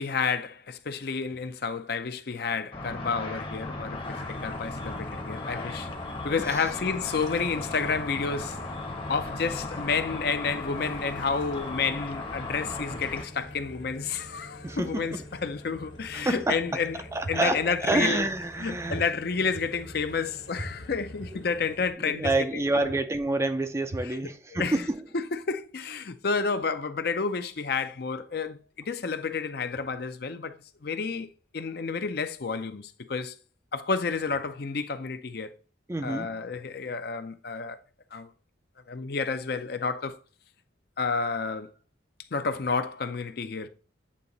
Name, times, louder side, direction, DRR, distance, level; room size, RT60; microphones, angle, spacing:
voice 1, 0.0-5.9 6.2-8.6 9.1-17.0 17.3-18.3 18.6-22.9 24.0-24.2 24.5-24.8 25.1-30.5 30.8-31.3 31.5-33.4 33.7-35.5 36.0-37.8 38.1-38.3 38.9-40.2 41.0-41.7 42.3-43.7, left 5 dB, 55° left, 0.5 m, -30 dB
Car / Traffic noise roadway noise / Engine, 2.7-13.2, left 2 dB, 25° left, 0.8 m, -36 dB
sound 1, 4.0-21.9, left 1 dB, 90° left, 1.4 m, -46 dB
voice 2, 6.4-6.7 14.6-15.2 16.1-19.0 21.3-21.4 22.0-25.2 35.9-36.4, right 2 dB, 15° right, 0.4 m, -29 dB
sound 2, 17.2-17.3 17.9-18.0 18.9-19.0 19.5-19.6 20.6-20.7 21.2-21.3 22.2-22.3 22.9-23.0 23.9-24.0 24.5-24.6, right 1 dB, 70° right, 0.9 m, -36 dB
8.5 x 2.9 x 3.9 m
head